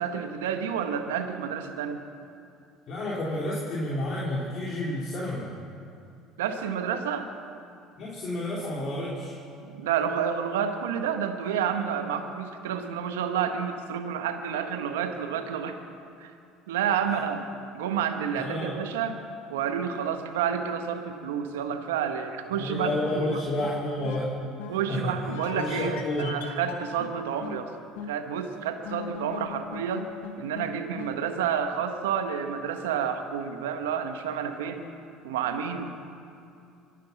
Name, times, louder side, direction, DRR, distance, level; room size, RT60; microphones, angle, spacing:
voice 1, 0.0-2.0 6.4-7.3 9.6-15.8 16.2-16.3 16.7-17.4 17.7-19.2 19.5-23.4 24.7-27.7 28.1-30.1 30.4-34.8 35.2-35.9, right 7 dB, 85° right, 6 dB, 1.3 m, -29 dB
voice 2, 2.9-5.5 8.0-9.4 18.4-18.7 22.5-24.3 24.9-25.1 25.5-26.4, left 1 dB, 50° left, -6 dB, 3.7 m, -30 dB
sound 1, 22.8-23.7 24.0-24.2 24.6-24.7 25.3-27.1 27.4-27.6 28.0-28.1 28.8-30.7 31.0-31.1, left 7 dB, 85° left, 1.5 m, -38 dB
24.0 x 10.0 x 6.0 m, 2.5 s
hypercardioid pair, 80°, 0 cm